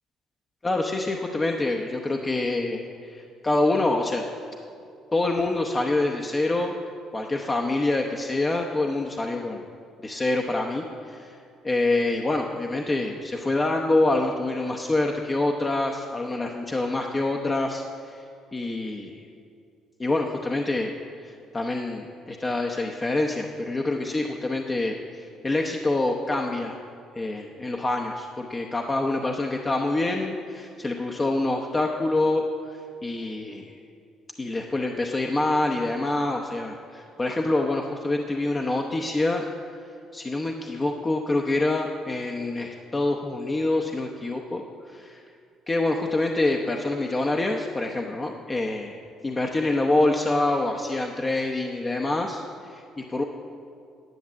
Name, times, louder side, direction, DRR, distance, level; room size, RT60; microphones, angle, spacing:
voice 1, 0.6-4.2 5.1-6.7 7.1-9.6 10.0-11.4 11.6-18.3 18.5-19.3 20.0-26.8 27.1-33.8 34.4-39.4 40.1-45.2 45.7-53.2, left 2 dB, 25° left, 1 dB, 0.8 m, -26 dB
10.5 x 7.2 x 7.4 m, 2.4 s
cardioid pair, 85°, 0 cm